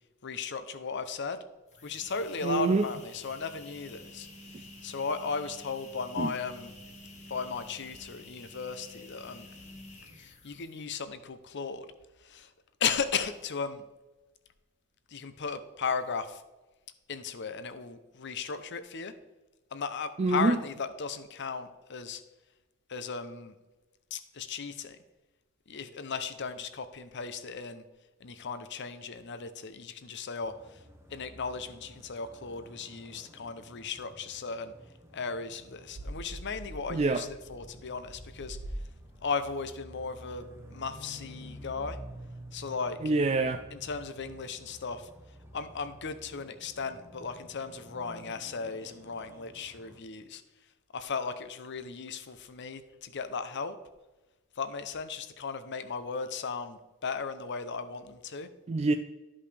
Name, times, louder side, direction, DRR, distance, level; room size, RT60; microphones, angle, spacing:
voice 1, 0.2-1.4 1.8-6.7 7.3-9.5 10.2-11.9 12.2-12.5 12.8-13.8 15.1-16.4 17.1-19.1 19.7-22.2 22.9-23.6 24.1-25.0 25.7-27.8 28.2-30.8 31.1-34.7 35.1-38.6 39.2-42.0 42.5-43.0 43.7-45.1 45.5-50.4 50.9-53.8 54.6-58.5, left 5 dB, 55° left, 11 dB, 0.7 m, -36 dB
sound 1, 1.6-11.0, left 2 dB, 35° left, 1.3 m, -50 dB
voice 2, 2.4-2.9 6.2-6.3 20.2-20.6 36.9-37.2 43.0-43.6 58.7-58.9, right 3 dB, 30° right, 8 dB, 0.3 m, -26 dB
sound 2, 30.4-50.0, equal, 10° right, 0.9 m, -51 dB
sound 3, 35.9-39.3, right 1 dB, 80° right, 1.0 m, -43 dB
12.5 x 5.4 x 3.3 m, 1.1 s
head